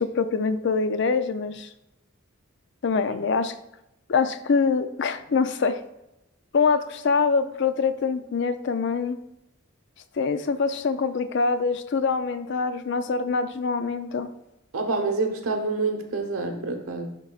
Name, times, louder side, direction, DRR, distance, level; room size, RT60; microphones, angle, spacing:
voice 1, 0.0-1.7 2.8-3.5 4.1-5.8 6.5-9.2 10.2-14.3, left 5 dB, 55° left, 11 dB, 0.4 m, -24 dB
voice 2, 14.7-17.1, right 3 dB, 90° right, 4 dB, 1.1 m, -27 dB
10.5 x 3.9 x 2.4 m, 0.90 s
head